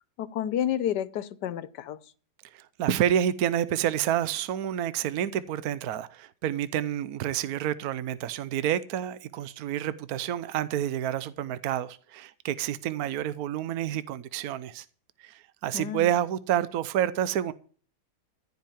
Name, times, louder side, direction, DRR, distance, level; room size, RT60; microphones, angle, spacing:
voice 1, 0.2-2.0 15.7-16.1, left 10 dB, 85° left, 1.4 m, -30 dB
voice 2, 2.5-14.8 15.2-17.5, right 10 dB, 70° right, 1.2 m, -29 dB
15.0 x 5.6 x 9.1 m
omnidirectional pair, 1.7 m